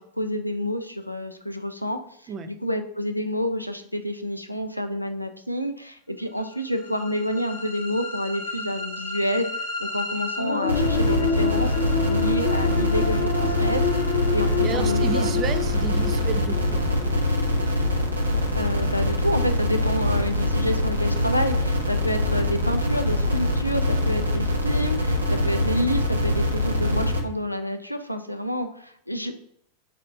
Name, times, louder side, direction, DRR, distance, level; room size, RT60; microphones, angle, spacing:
voice 1, 0.0-13.8 14.1-15.3 18.5-29.4, equal, 90° left, 7 dB, 0.3 m, -28 dB
sound 1, 6.5-18.6, left 5 dB, 50° left, 0.7 m, -29 dB
sound 2, 10.7-27.2, left 1 dB, 85° right, 0.6 m, -24 dB
voice 2, 14.6-16.9, right 6 dB, 30° right, 8 dB, 0.3 m, -31 dB
4.2 x 2.2 x 3.7 m, 0.69 s
figure-of-eight pair, 90°, 0 cm